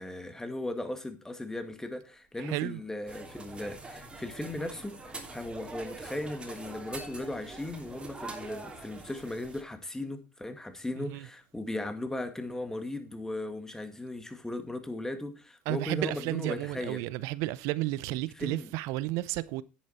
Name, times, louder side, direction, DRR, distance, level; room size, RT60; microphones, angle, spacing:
voice 1, 0.0-17.0 18.4-18.7, left 1 dB, 10° left, 2.1 m, -37 dB
voice 2, 2.4-2.8 11.0-11.3 15.7-19.6, right 18 dB, 65° right, 0.8 m, -32 dB
sound 1, 3.1-9.6, right 3 dB, 15° right, 3.1 m, -44 dB
10.5 x 8.5 x 4.3 m
hypercardioid pair, 85°, 5 cm